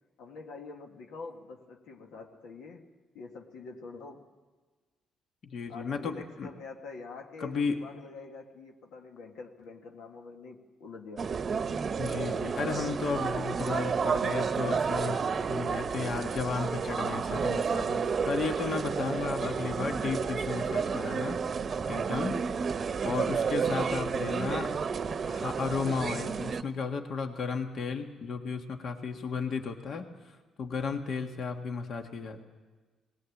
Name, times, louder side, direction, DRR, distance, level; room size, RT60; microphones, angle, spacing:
voice 1, 0.2-4.3 5.7-11.4 16.9-17.1 24.1-24.8, left 4 dB, 85° left, 2 dB, 1.7 m, -46 dB
voice 2, 5.4-6.5 7.4-7.8 12.0-21.4 21.9-22.4 23.0-24.7 25.3-32.4, left 5 dB, 60° left, 4 dB, 1.7 m, -34 dB
sound 1, 11.2-26.6, right 6 dB, 45° right, 0.8 m, -31 dB
19.0 x 18.5 x 8.5 m, 1.3 s
cardioid pair, 90°, 0 cm